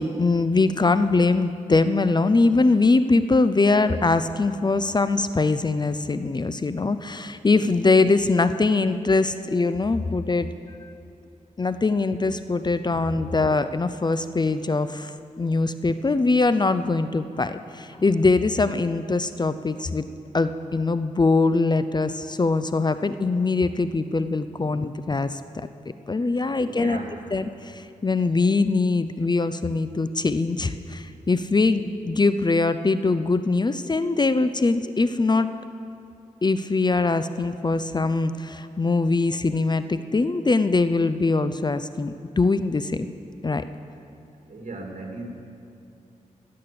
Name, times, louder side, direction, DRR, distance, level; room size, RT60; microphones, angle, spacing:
voice 1, 0.0-10.5 10.8-10.9 11.6-15.1 15.4-20.0 20.3-25.4 26.1-27.0 27.3-35.5 36.4-43.1 43.4-43.6, left 3 dB, 30° left, 12 dB, 0.5 m, -22 dB
voice 2, 26.2-27.2 44.5-45.2, right 2 dB, 65° right, 1 dB, 2.3 m, -38 dB
15.0 x 8.7 x 6.8 m, 2.7 s
cardioid pair, 55°, 14 cm